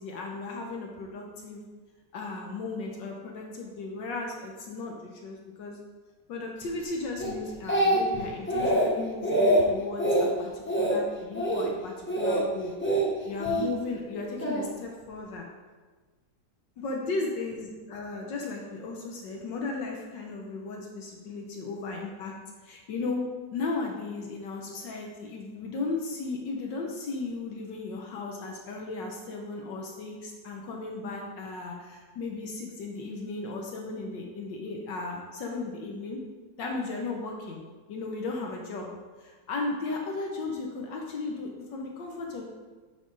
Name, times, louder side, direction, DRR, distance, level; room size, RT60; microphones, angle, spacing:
voice 1, 0.0-1.6 2.1-5.8 6.3-10.5 10.8-12.7 13.3-15.5 16.8-22.3 22.6-23.2 23.5-36.2 36.6-37.6 37.9-38.9 39.2-42.4, left 3 dB, 75° left, 0 dB, 1.5 m, -35 dB
Speech, 7.2-8.2 8.5-8.9 9.2-9.6 10.0-10.3 10.7-11.0 11.3-11.7 12.1-12.4 12.8-13.6 14.4-14.7, right 1 dB, 10° left, 0.7 m, -24 dB
9.2 x 4.2 x 4.0 m, 1.3 s
omnidirectional pair, 2.0 m